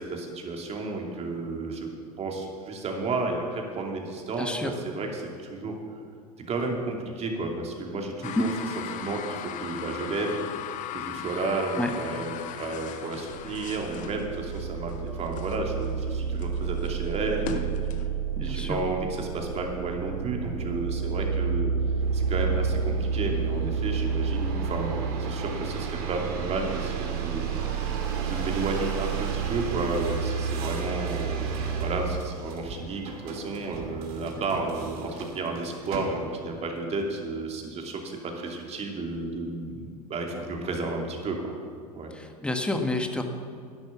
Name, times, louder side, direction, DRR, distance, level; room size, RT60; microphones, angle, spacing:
voice 1, 0.0-1.9 2.2-5.8 6.4-8.5 8.9-10.4 10.9-17.7 18.4-21.7 22.1-41.6 41.9-42.1, right 3 dB, 35° right, 2 dB, 2.7 m, -32 dB
voice 2, 4.4-4.7 8.2-8.4 11.8-11.9 18.4-18.8 42.1-43.2, left 2 dB, 5° left, 5 dB, 1.5 m, -29 dB
sound 1, 8.2-18.1, left 9 dB, 40° left, 0.9 m, -39 dB
sound 2, 13.3-32.2, right 6 dB, 75° right, 0.6 m, -30 dB
sound 3, 22.0-36.5 37.1-37.7, right 3 dB, 55° right, 2.4 m, -39 dB
11.0 x 10.5 x 7.3 m, 2.3 s
hypercardioid pair, 85°, 20 cm